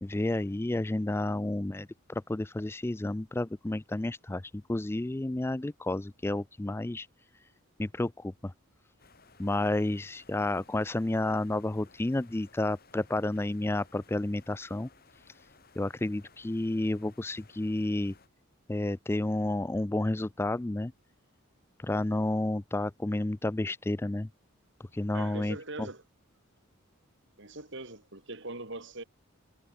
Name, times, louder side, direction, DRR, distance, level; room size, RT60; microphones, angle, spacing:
voice 1, 0.0-7.1 7.8-8.5 9.4-14.9 15.8-18.1 18.7-20.9 21.8-24.3 24.9-25.6, left 2 dB, 10° left, 0.3 m, -31 dB
sound 1, 9.0-18.3, left 4 dB, 45° left, 4.0 m, -60 dB
voice 2, 25.1-26.0 27.4-29.0, right 2 dB, 55° right, 3.4 m, -41 dB
head